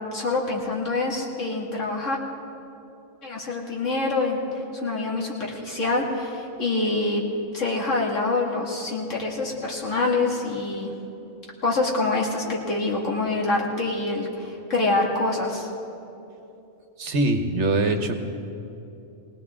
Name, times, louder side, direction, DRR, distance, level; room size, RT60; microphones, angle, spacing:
voice 1, 0.1-2.2 3.2-4.4 4.7-7.2 7.5-10.9 11.6-15.7, left 3 dB, 70° left, -2 dB, 2.4 m, -26 dB
voice 2, 17.0-18.2, right 2 dB, 65° right, 6 dB, 1.3 m, -23 dB
21.0 x 18.0 x 3.6 m, 2.8 s
omnidirectional pair, 1.3 m